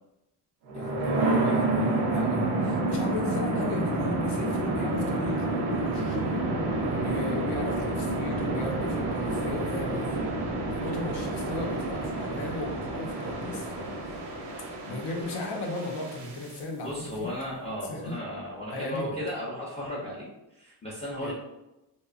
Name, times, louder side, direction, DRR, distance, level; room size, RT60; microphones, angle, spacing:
voice 1, 0.7-6.4 6.7-10.2 10.7-14.2 14.8-17.3 17.9-18.2 18.7-19.2 21.2-21.3, left 2 dB, 75° left, 0 dB, 0.7 m, -36 dB
sound 1, 0.7-16.6, right 2 dB, 85° right, 0.6 m, -29 dB
voice 2, 16.8-21.3, equal, 15° left, -7 dB, 0.5 m, -35 dB
2.9 x 2.1 x 2.3 m, 0.95 s
cardioid pair, 130°, 41 cm